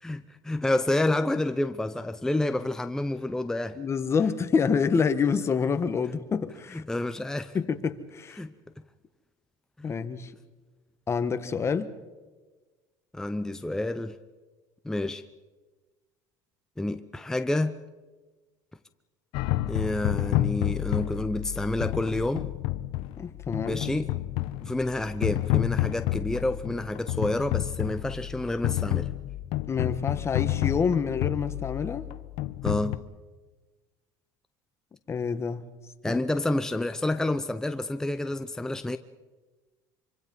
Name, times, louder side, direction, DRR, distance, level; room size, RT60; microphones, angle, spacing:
voice 1, 0.0-3.8 6.7-7.6 8.4-8.5 13.1-14.2 14.8-15.2 16.8-17.8 19.7-22.5 23.7-24.1 24.6-29.1 32.6-33.0 36.0-39.0, left 1 dB, 5° left, 0.7 m, -29 dB
voice 2, 3.8-6.8 7.5-8.4 9.8-10.3 11.1-11.9 23.2-23.8 29.7-32.1 35.1-35.6 36.1-36.2, left 5 dB, 30° left, 1.5 m, -27 dB
sound 1, 19.3-33.0, left 15 dB, 70° left, 1.0 m, -30 dB
26.0 x 24.5 x 5.5 m
supercardioid pair, 115°, 10 cm